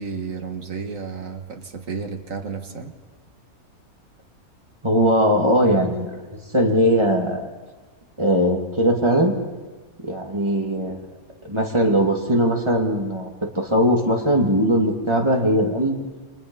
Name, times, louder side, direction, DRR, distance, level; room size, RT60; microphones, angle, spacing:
voice 1, 0.0-2.9, right 5 dB, 65° right, 6 dB, 1.9 m, -32 dB
voice 2, 4.8-6.2 6.5-7.5 8.2-9.3 10.0-11.0 11.4-13.3 13.5-16.0, equal, 20° right, 0 dB, 2.7 m, -20 dB
29.5 x 25.5 x 5.6 m, 1.3 s
omnidirectional pair, 1.6 m